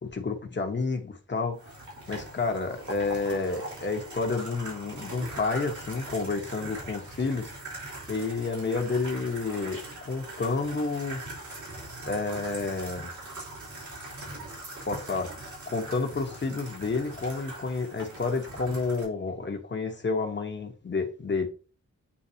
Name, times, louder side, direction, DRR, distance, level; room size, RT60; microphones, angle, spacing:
voice 1, 0.0-1.6 2.1-7.5 8.1-11.2 12.0-13.1 14.8-21.5, left 4 dB, 40° left, 1.2 m, -30 dB
sound 1, 1.6-19.0, right 2 dB, 80° right, 3.4 m, -41 dB
8.5 x 3.9 x 2.9 m
wide cardioid pair, 135°, 30 cm